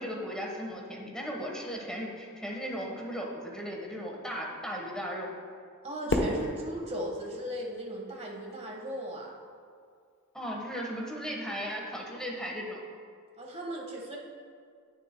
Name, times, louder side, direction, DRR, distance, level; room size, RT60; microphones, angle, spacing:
voice 1, 0.0-5.3 10.3-12.8, equal, 5° left, -2 dB, 1.3 m, -36 dB
voice 2, 5.8-9.4 13.4-14.2, equal, 30° right, -1 dB, 1.5 m, -37 dB
Fireworks, 6.1-8.4, left 1 dB, 60° left, 1.0 m, -33 dB
19.0 x 7.1 x 2.2 m, 2.1 s
head